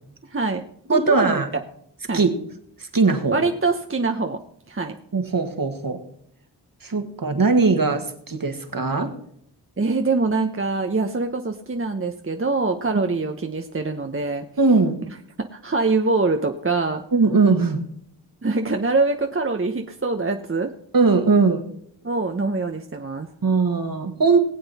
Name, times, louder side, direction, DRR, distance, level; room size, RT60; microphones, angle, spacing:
voice 1, 0.3-0.6 0.9-1.4 2.1-2.2 3.3-4.4 4.7-4.9 9.8-14.4 15.5-17.0 18.4-20.7 22.0-23.3, right 3 dB, 30° right, 4 dB, 1.0 m, -24 dB
voice 2, 0.9-1.5 2.1-2.3 2.8-3.4 5.1-6.0 6.8-9.1 14.6-15.0 17.1-17.8 20.9-21.6 23.4-24.4, right 4 dB, 50° right, 6 dB, 1.8 m, -20 dB
19.5 x 7.9 x 4.2 m, 0.68 s
cardioid pair, 50°, 44 cm